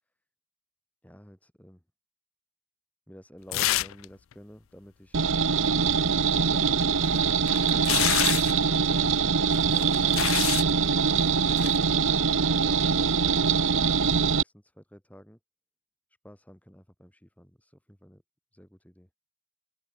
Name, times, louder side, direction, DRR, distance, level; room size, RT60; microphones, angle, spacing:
voice 1, 1.0-1.8 3.1-5.7 6.4-9.0 12.5-15.4 16.2-18.2 18.5-19.1, equal, 5° left, 5.2 m, -51 dB
sound 1, 3.5-4.1 4.3-4.4 6.8-8.6 9.5-10.7 11.5-11.8, left 15 dB, 85° left, 0.4 m, -28 dB
sound 2, 5.1-14.4, right 5 dB, 75° right, 1.1 m, -23 dB
open air
head